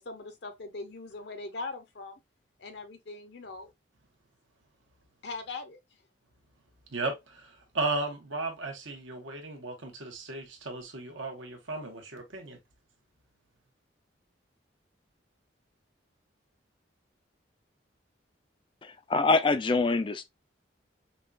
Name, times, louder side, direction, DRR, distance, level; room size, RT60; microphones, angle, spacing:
voice 1, 0.0-2.2 2.6-3.7 5.2-5.8, left 3 dB, 60° left, 0.6 m, -40 dB
voice 2, 6.9-12.6, right 3 dB, 85° right, 1.2 m, -35 dB
voice 3, 18.8-20.2, left 3 dB, 25° left, 0.3 m, -25 dB
5.4 x 2.3 x 2.4 m
head